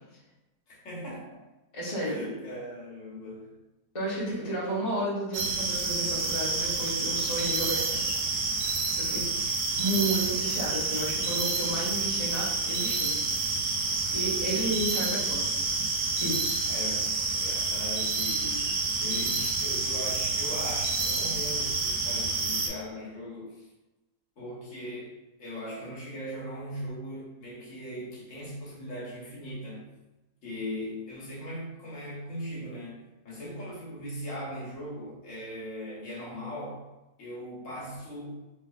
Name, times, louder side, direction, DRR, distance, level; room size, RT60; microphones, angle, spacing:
voice 1, 0.7-1.5 2.0-3.6 4.4-4.7 9.0-9.4 16.7-23.7 24.4-29.9 30.4-36.9 37.2-38.4, equal, 55° left, -6 dB, 1.4 m, -39 dB
voice 2, 1.7-2.2 3.9-8.1 9.0-9.3 9.8-13.3 14.1-15.5 16.2-16.6, right 1 dB, 25° left, -6 dB, 0.8 m, -32 dB
sound 1, 5.3-22.7, right 3 dB, 85° right, 1.2 m, -29 dB
3.5 x 3.2 x 2.3 m, 1.0 s
omnidirectional pair, 1.6 m